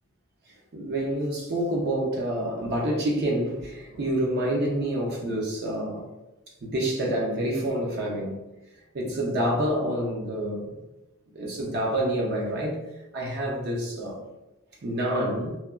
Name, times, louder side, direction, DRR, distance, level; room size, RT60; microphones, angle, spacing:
voice 1, 0.5-6.1 6.6-8.4 8.9-10.8 11.3-12.8 13.1-14.3 14.8-15.6, right 1 dB, 55° right, 0.5 m, -28 dB
3.0 x 2.2 x 2.3 m
head